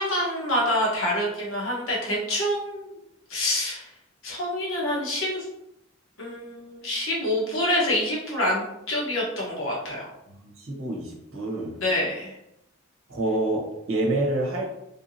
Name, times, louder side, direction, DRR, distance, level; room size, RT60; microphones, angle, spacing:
voice 1, 0.0-2.9 3.3-3.9 4.2-5.4 6.2-10.1 11.8-12.3, left 1 dB, 75° left, -4 dB, 1.2 m, -26 dB
voice 2, 10.4-11.8 13.1-14.7, right 2 dB, 75° right, -1 dB, 0.9 m, -27 dB
3.4 x 2.8 x 2.7 m, 0.84 s
head